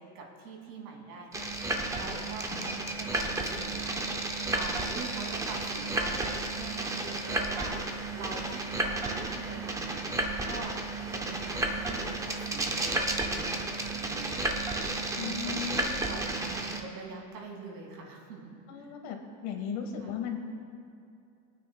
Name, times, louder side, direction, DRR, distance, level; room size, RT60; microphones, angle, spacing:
voice 1, 0.0-7.8 8.1-10.8 11.1-18.9 20.0-20.1, right 3 dB, 80° right, -1 dB, 2.8 m, -45 dB
sound 1, 1.3-16.8, right 2 dB, 5° right, 0.4 m, -32 dB
voice 2, 2.0-2.8 15.2-15.9 18.7-19.2 19.4-20.4, left 7 dB, 50° left, 4 dB, 1.5 m, -37 dB
25.5 x 9.3 x 2.3 m, 2.5 s
supercardioid pair, 140°, 46 cm